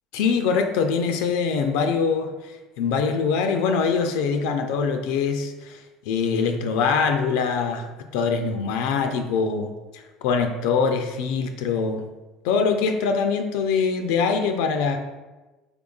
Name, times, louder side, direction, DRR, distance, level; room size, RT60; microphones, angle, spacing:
voice 1, 0.1-12.0 12.4-15.0, left 5 dB, 80° left, 5 dB, 0.3 m, -23 dB
3.7 x 3.4 x 2.3 m, 1.2 s
supercardioid pair, 105°, 0 cm